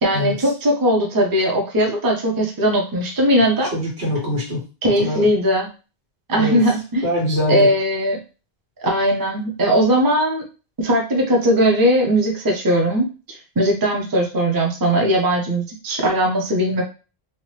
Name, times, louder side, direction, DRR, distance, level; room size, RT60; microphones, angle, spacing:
voice 1, 0.0-3.7 4.8-5.7 6.3-7.1 7.5-8.2 8.8-10.4 10.8-13.1 13.6-16.8, equal, 25° right, 1 dB, 0.6 m, -19 dB
voice 2, 3.4-5.2 6.4-6.7 7.0-7.7, left 1 dB, 90° right, -2 dB, 1.5 m, -24 dB
2.8 x 2.2 x 3.2 m, 0.33 s
omnidirectional pair, 1.1 m